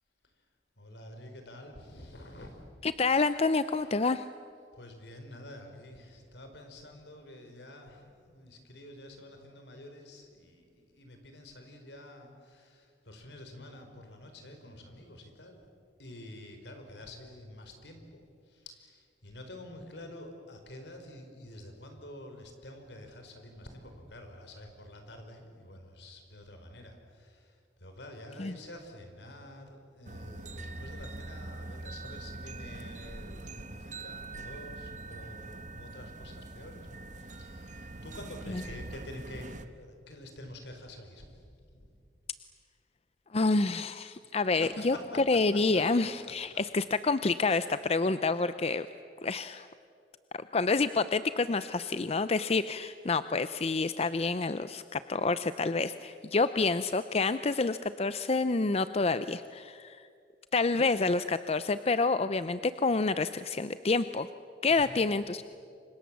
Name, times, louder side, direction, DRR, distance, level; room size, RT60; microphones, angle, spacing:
voice 1, 0.8-2.7 4.7-15.6 16.0-41.9 44.5-46.3 64.7-65.0, left 1 dB, 75° left, 5 dB, 4.6 m, -48 dB
voice 2, 2.8-4.3 28.4-28.6 43.3-44.9 45.3-48.9 49.2-49.7 50.5-60.1 60.5-64.3 64.6-65.4, left 3 dB, 35° left, 12 dB, 0.6 m, -28 dB
sound 1, 30.0-39.6, right 2 dB, 45° right, 1.2 m, -43 dB
29.5 x 25.0 x 7.5 m, 2.3 s
head